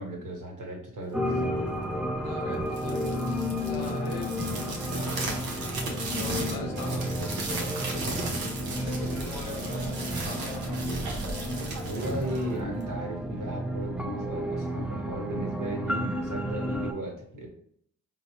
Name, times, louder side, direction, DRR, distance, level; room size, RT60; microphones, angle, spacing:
voice 1, 0.0-1.3 11.8-17.5, right 1 dB, 60° right, 0 dB, 1.1 m, -36 dB
sound 1, 1.1-16.9, equal, 5° right, 0.4 m, -32 dB
voice 2, 2.1-11.3, left 3 dB, 90° left, 2 dB, 0.7 m, -41 dB
sound 2, 2.6-13.0, right 3 dB, 85° right, 0.7 m, -36 dB
3.9 x 2.0 x 2.9 m, 0.65 s
supercardioid pair, 45°, 36 cm